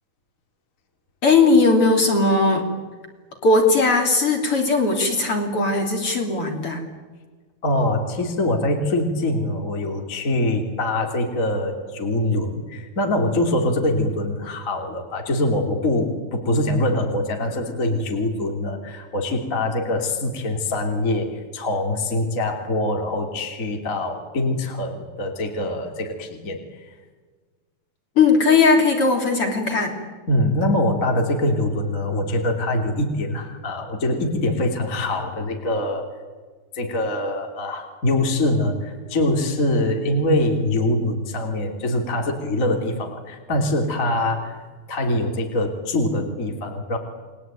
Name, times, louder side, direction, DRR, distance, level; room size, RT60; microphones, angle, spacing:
voice 1, 1.2-2.7 3.4-6.8 28.2-30.0, left 3 dB, 35° left, 3 dB, 3.9 m, -18 dB
voice 2, 7.6-26.6 30.3-36.1 36.7-47.0, left 1 dB, 20° left, 2 dB, 3.1 m, -23 dB
29.5 x 22.0 x 9.2 m, 1.4 s
omnidirectional pair, 4.4 m